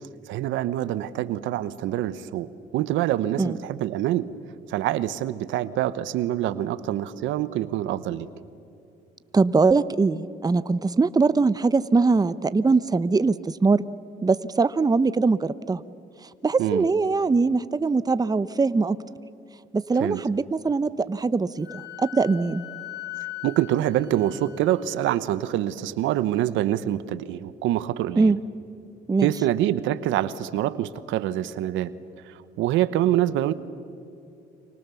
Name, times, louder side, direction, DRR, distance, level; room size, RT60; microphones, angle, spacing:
voice 1, 0.3-4.3 4.7-8.3 16.6-16.9 20.0-20.2 23.4-28.4 29.2-31.9 32.2-33.5, right 13 dB, 85° right, 15 dB, 1.0 m, -25 dB
voice 2, 9.3-13.3 13.6-13.8 14.2-15.8 16.4-19.0 19.7-22.6 28.2-28.4 29.1-29.3, right 4 dB, 20° right, 15 dB, 0.8 m, -22 dB
Wind instrument woodwind instrument, 21.6-25.1, left 16 dB, 65° left, 3.6 m, -39 dB
30.0 x 25.0 x 7.0 m, 2.7 s
cardioid pair, 80°, 19 cm